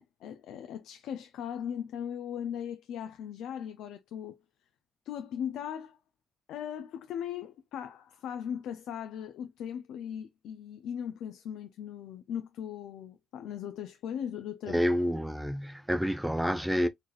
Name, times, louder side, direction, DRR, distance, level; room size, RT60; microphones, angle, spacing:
voice 1, 0.0-4.4 5.0-6.0 6.5-14.8, left 9 dB, 85° left, 0.5 m, -38 dB
voice 2, 14.7-16.9, equal, 5° right, 0.4 m, -28 dB
4.1 x 2.5 x 3.0 m
cardioid pair, 90°, 0 cm